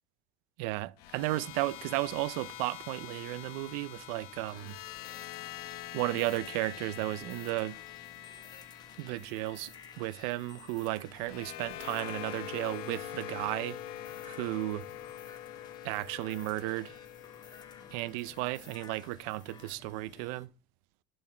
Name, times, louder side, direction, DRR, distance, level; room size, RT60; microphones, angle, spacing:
voice 1, 0.6-4.8 5.9-7.8 9.0-13.8 14.2-14.8 15.8-17.0 17.9-20.5, right 19 dB, 75° right, 0.6 m, -34 dB
sound 1, 1.0-19.1, left 13 dB, 60° left, 0.9 m, -45 dB
sound 2, 1.1-20.5, left 5 dB, 40° left, 1.6 m, -58 dB
sound 3, 4.5-19.8, left 6 dB, 20° left, 0.9 m, -55 dB
9.5 x 7.9 x 4.3 m
cardioid pair, 155°, 18 cm